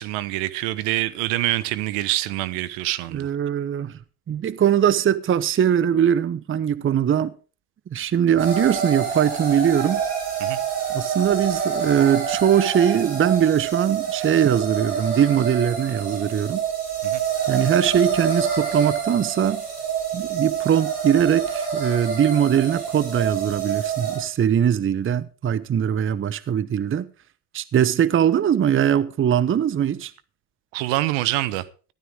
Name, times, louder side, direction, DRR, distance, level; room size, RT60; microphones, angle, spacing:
voice 1, 0.0-3.3 10.4-10.6 17.0-17.2 30.7-31.6, right 16 dB, 65° right, 1.2 m, -25 dB
voice 2, 3.1-3.9 4.3-7.3 7.9-10.0 10.9-16.6 17.5-19.6 20.1-27.1 27.5-30.1, right 9 dB, 25° right, 0.8 m, -21 dB
sound 1, 8.4-24.2, right 7 dB, 85° right, 6.1 m, -27 dB
15.0 x 12.5 x 3.6 m
hypercardioid pair, 70°, 45 cm